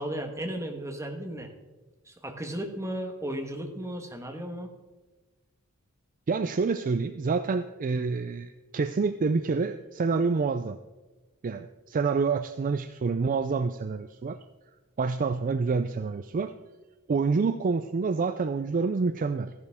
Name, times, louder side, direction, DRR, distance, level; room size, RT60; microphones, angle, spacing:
voice 1, 0.0-1.5 2.0-4.7, right 1 dB, 15° right, 3 dB, 1.4 m, -35 dB
voice 2, 6.3-10.8 11.4-14.4 15.0-16.5 17.1-19.5, right 4 dB, 35° right, 11 dB, 0.4 m, -27 dB
14.0 x 11.0 x 3.6 m, 1.2 s
head